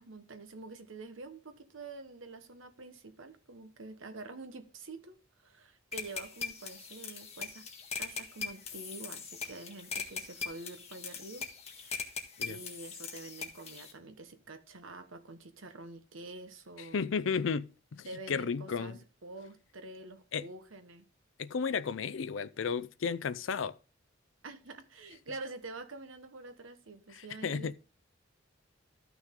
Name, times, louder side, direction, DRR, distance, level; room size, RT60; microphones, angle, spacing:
voice 1, 0.0-7.7 8.0-11.5 11.8-12.1 12.4-17.1 18.1-21.0 24.4-27.7, right 2 dB, 80° right, 1.2 m, -47 dB
sound 1, 5.9-13.9, left 6 dB, 30° left, 1.6 m, -41 dB
voice 2, 16.8-19.0 20.3-20.5 21.4-23.8 27.1-27.7, left 5 dB, 70° left, 0.5 m, -34 dB
13.0 x 6.1 x 3.7 m
head